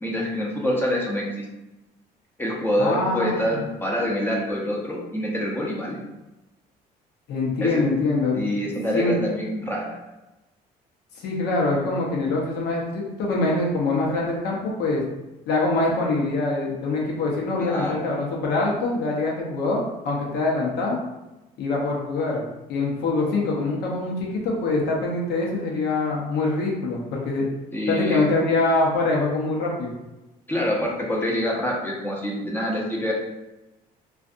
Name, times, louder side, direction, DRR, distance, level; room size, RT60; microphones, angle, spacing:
voice 1, 0.0-1.4 2.4-6.0 7.6-7.8 8.3-10.0 17.6-18.1 27.7-28.2 30.5-33.1, equal, 10° left, -3 dB, 0.7 m, -26 dB
voice 2, 2.8-3.7 7.3-8.7 8.9-9.2 11.2-15.0 15.5-21.0 21.6-27.5 27.9-29.9, left 2 dB, 75° left, -2 dB, 0.8 m, -24 dB
2.5 x 2.3 x 2.5 m, 1.0 s
cardioid pair, 110°, 17 cm